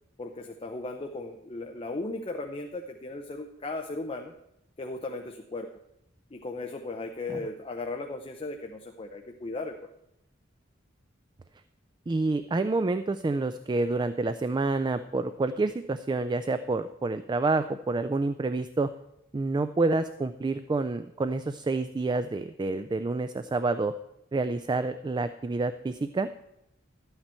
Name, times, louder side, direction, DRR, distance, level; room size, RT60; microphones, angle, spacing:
voice 1, 0.2-4.3 4.8-5.7 6.3-9.8, left 2 dB, 25° left, 4 dB, 0.6 m, -36 dB
voice 2, 12.1-18.9 19.3-23.9 24.3-26.3, right 3 dB, 20° right, 11 dB, 0.3 m, -28 dB
12.5 x 8.8 x 4.4 m, 0.83 s
head